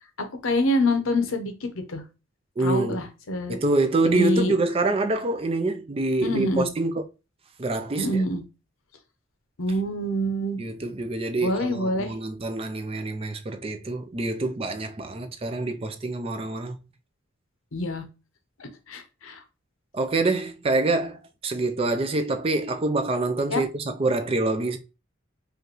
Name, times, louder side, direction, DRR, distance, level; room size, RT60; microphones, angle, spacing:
voice 1, 0.4-2.0 2.6-3.6 4.0-4.5 6.2-6.7 8.0-8.4 9.6-10.6 11.4-12.1 17.7-18.0 18.6-19.4 23.5-23.6, left 1 dB, 85° left, 0.8 m, -26 dB
voice 2, 2.6-3.0 3.5-7.0 7.6-8.2 10.6-16.8 19.9-24.8, right 2 dB, 30° right, 0.4 m, -26 dB
4.9 x 2.5 x 3.0 m
head